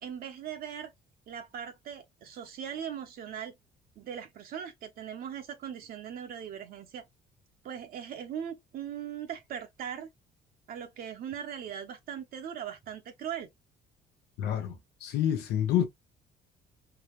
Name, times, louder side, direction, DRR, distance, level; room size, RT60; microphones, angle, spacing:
voice 1, 0.0-0.9 1.3-3.5 4.0-7.0 7.6-10.1 10.7-13.5, right 8 dB, 60° right, 0.8 m, -39 dB
voice 2, 14.4-15.8, left 10 dB, 85° left, 0.8 m, -28 dB
3.9 x 2.1 x 3.0 m
cardioid pair, 110°, 17 cm